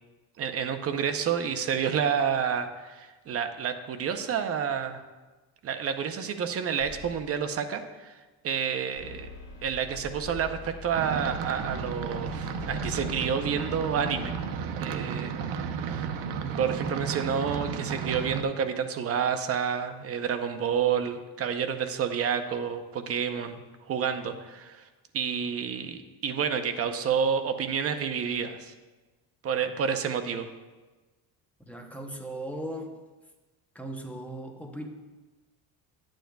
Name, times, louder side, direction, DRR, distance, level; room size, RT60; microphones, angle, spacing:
voice 1, 0.4-5.0 5.6-8.2 8.4-9.3 9.6-14.3 14.7-15.3 15.8-16.1 16.4-24.8 25.1-28.7 29.4-30.5, right 7 dB, 35° right, 8 dB, 0.7 m, -29 dB
sound 1, 6.8-7.5 9.0-14.4, left 5 dB, 45° left, 1.7 m, -43 dB
sound 2, 10.9-18.4, right 7 dB, 85° right, 0.8 m, -33 dB
voice 2, 31.7-33.0 33.7-34.9, right 1 dB, 5° left, 1 dB, 0.7 m, -38 dB
11.5 x 8.9 x 2.3 m, 1.2 s
cardioid pair, 150°, 40 cm